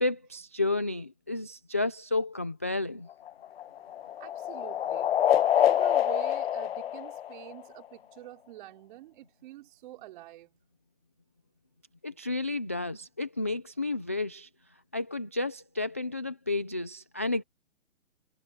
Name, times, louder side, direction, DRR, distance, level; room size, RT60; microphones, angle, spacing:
voice 1, 0.0-3.1 12.0-14.5 14.9-17.4, left 2 dB, 10° left, 0.4 m, -31 dB
sound 1, 3.1-7.9, left 10 dB, 45° left, 1.4 m, -27 dB
voice 2, 4.2-5.2 5.6-10.5, right 15 dB, 35° right, 4.8 m, -46 dB
hypercardioid pair, 145°, 42 cm